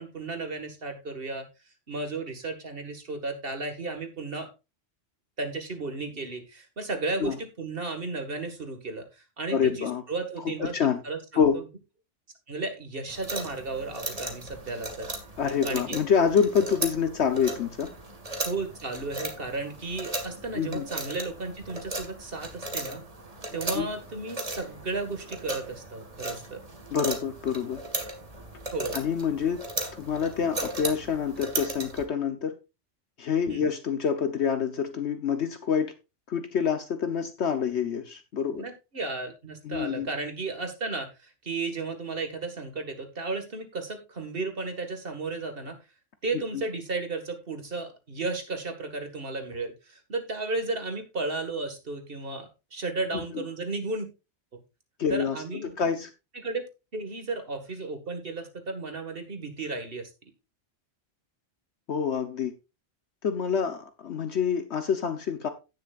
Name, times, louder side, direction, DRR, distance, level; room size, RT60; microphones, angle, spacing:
voice 1, 0.0-1.5 1.9-4.5 5.4-10.7 11.0-11.6 12.5-15.1 15.6-16.0 18.4-23.0 23.5-26.6 28.7-29.0 33.5-33.7 38.6-45.8 46.2-54.1 55.1-55.8 56.3-56.6 56.9-60.1, right 3 dB, 50° right, 2.0 m, -34 dB
voice 2, 9.5-10.0 10.6-11.0 11.4-11.6 15.4-17.9 20.5-20.9 23.7-23.9 26.9-27.8 28.9-29.6 30.0-32.5 33.2-35.9 36.3-38.6 39.6-40.1 46.5-46.6 53.3-53.4 55.0-55.4 55.8-56.1 61.9-62.5 63.2-65.5, left 7 dB, 65° left, 1.2 m, -27 dB
sound 1, 13.1-32.0, right 2 dB, 30° right, 1.7 m, -37 dB
17.0 x 6.7 x 2.5 m
omnidirectional pair, 1.3 m